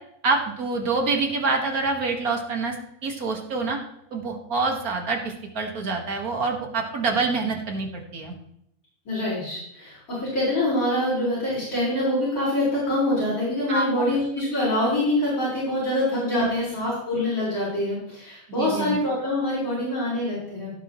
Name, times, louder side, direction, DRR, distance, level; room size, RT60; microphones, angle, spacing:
voice 1, 0.2-2.8 3.0-3.8 4.1-8.3 13.7-13.9 16.3-16.5 18.6-19.0, right 4 dB, 75° right, 2 dB, 2.1 m, -26 dB
voice 2, 9.1-20.7, left 1 dB, 65° left, -10 dB, 5.5 m, -25 dB
16.5 x 8.2 x 3.1 m, 0.76 s
omnidirectional pair, 1.6 m